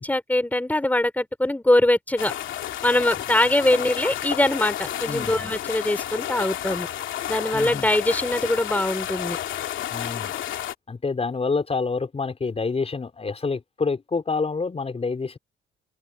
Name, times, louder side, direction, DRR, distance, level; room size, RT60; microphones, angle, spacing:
voice 1, 0.0-2.3 2.8-6.9 7.3-9.4, left 1 dB, 10° left, 4.0 m, -22 dB
sound 1, 2.2-10.7, left 11 dB, 75° left, 2.6 m, -31 dB
voice 2, 5.1-5.5 7.5-7.9 9.9-10.3 10.9-15.4, left 4 dB, 30° left, 5.1 m, -27 dB
open air
cardioid pair, 90°, 20 cm